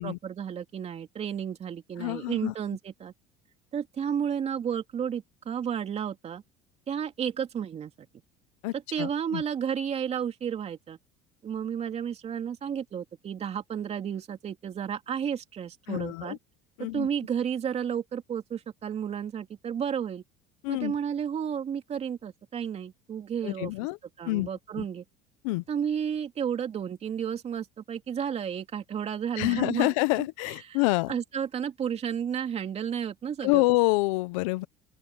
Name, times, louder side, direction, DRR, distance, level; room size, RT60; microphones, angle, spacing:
voice 1, 0.0-3.1 3.7-6.4 6.9-8.1 8.9-11.0 11.4-16.4 16.9-20.2 20.7-23.7 24.2-25.0 25.7-29.9 30.7-30.8 31.1-33.6, right 8 dB, 40° right, 2.9 m, -32 dB
voice 2, 2.0-2.5 8.6-9.4 15.9-16.4 16.8-17.1 20.6-20.9 23.4-24.0 24.2-24.5 24.8-24.9 25.4-25.6 29.4-31.2 33.4-34.7, left 23 dB, 90° left, 0.8 m, -27 dB
open air
supercardioid pair, 100°, 16 cm